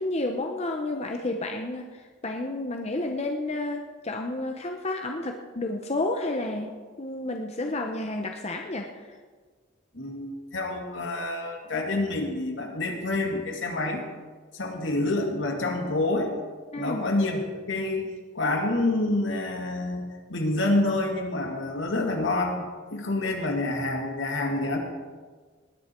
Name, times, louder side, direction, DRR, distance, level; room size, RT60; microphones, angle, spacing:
voice 1, 0.0-6.7 7.0-9.2 16.7-17.1, left 2 dB, 35° left, 3 dB, 0.8 m, -31 dB
voice 2, 9.9-14.0 14.5-16.3 16.8-18.1 18.3-22.6 22.9-24.8, left 2 dB, 75° left, 2 dB, 2.2 m, -27 dB
19.0 x 9.9 x 4.5 m, 1.5 s
head